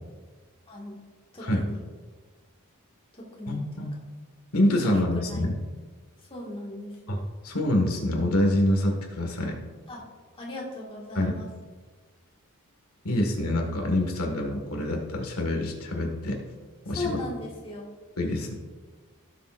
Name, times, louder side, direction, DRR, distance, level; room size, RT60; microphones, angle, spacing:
voice 1, 0.7-1.0 1.3-1.8 3.1-3.6 4.8-5.4 6.3-7.2 9.9-10.0 10.4-11.5 17.0-17.9, left 2 dB, 25° left, -3 dB, 1.8 m, -37 dB
voice 2, 3.5-3.9 4.5-5.6 7.1-9.6 11.2-11.3 13.0-16.4 16.9-17.1 18.2-18.5, left 1 dB, 75° left, 2 dB, 1.8 m, -26 dB
17.0 x 7.0 x 2.5 m, 1.5 s
head